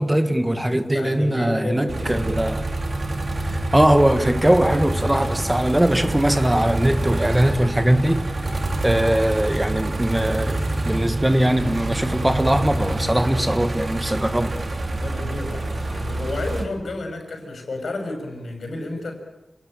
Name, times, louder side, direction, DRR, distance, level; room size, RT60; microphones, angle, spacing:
voice 1, 0.0-2.6 3.5-8.3 8.8-10.6 10.8-14.6, right 1 dB, 10° right, 1.4 m, -20 dB
voice 2, 0.9-2.3 15.0-19.2, left 2 dB, 75° left, 6.4 m, -31 dB
sound 1, 0.9-15.4, right 1 dB, 5° left, 3.9 m, -37 dB
sound 2, 0.9-16.9, right 5 dB, 80° right, 6.2 m, -42 dB
sound 3, 1.9-16.7, right 2 dB, 45° right, 2.8 m, -27 dB
28.0 x 20.0 x 9.0 m
wide cardioid pair, 100°, 0 cm